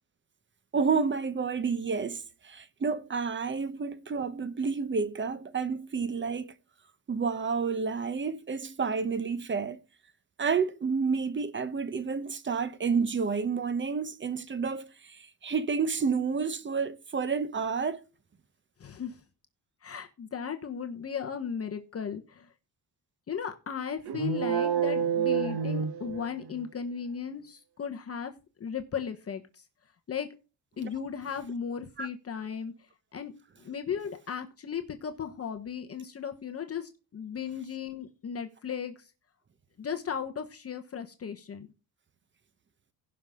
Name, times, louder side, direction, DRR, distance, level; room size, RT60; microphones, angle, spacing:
voice 1, 0.7-6.5 7.1-9.8 10.4-18.0 32.0-32.1, right 5 dB, 30° right, 0.9 m, -30 dB
voice 2, 18.8-19.2 19.8-22.5 23.3-28.3 28.6-29.6 30.1-30.3 30.8-32.7 33.1-33.3 33.6-39.0 39.8-41.7, left 7 dB, 35° left, 1.1 m, -36 dB
sound 1, 24.1-26.6, right 7 dB, 75° right, 1.5 m, -28 dB
16.5 x 5.8 x 3.6 m
cardioid pair, 130°, 39 cm